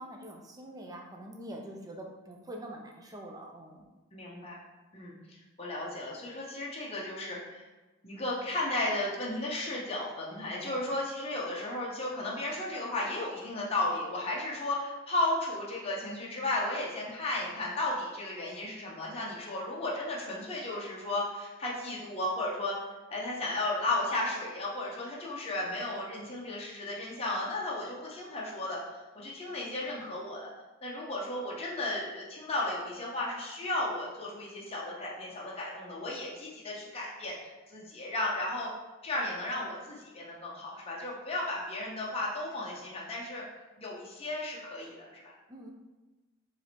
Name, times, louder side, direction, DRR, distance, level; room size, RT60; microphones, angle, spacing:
voice 1, 0.0-3.9 10.3-10.9 45.5-45.7, right 1 dB, 20° right, 0 dB, 0.5 m, -45 dB
voice 2, 4.1-4.6 4.9-5.1 5.6-7.6 8.0-22.7 23.1-28.8 29.1-30.4 30.8-38.7 39.0-43.4 43.8-45.3, left 2 dB, 30° left, -4 dB, 0.8 m, -34 dB
4.6 x 3.3 x 2.9 m, 1.2 s
head